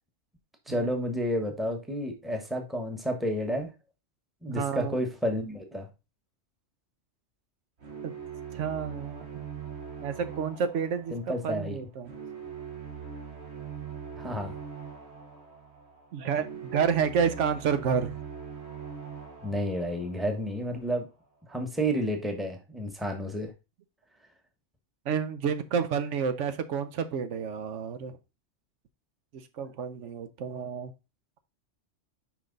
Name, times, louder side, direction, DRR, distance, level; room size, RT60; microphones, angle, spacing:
voice 1, 0.7-3.7 4.4-5.9 11.1-11.8 14.2-14.6 19.4-21.1 21.5-23.5, equal, ahead, 4 dB, 1.1 m, -31 dB
voice 2, 4.5-4.9 8.0-8.1 8.5-9.3 10.0-12.1 16.1-18.1 25.1-28.1 29.3-30.9, right 6 dB, 80° right, 10 dB, 1.0 m, -30 dB
sound 1, 7.8-20.9, right 7 dB, 60° right, 1.5 m, -42 dB
5.9 x 5.2 x 3.9 m, 0.27 s
omnidirectional pair, 1.2 m